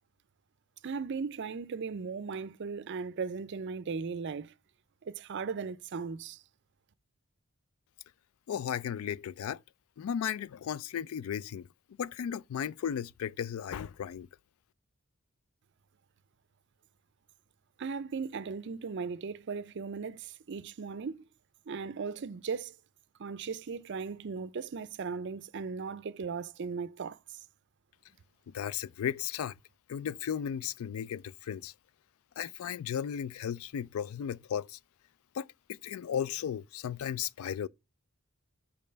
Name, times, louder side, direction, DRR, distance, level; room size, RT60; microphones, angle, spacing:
voice 1, 0.8-4.5 5.0-6.4 17.8-21.2 21.7-22.7 23.2-27.2, right 5 dB, 50° right, 0.4 m, -37 dB
voice 2, 8.5-9.6 10.0-11.7 12.0-14.3 28.5-29.5 29.9-31.7 32.4-34.8 35.3-37.7, left 8 dB, 70° left, 0.3 m, -35 dB
5.3 x 4.1 x 5.6 m
head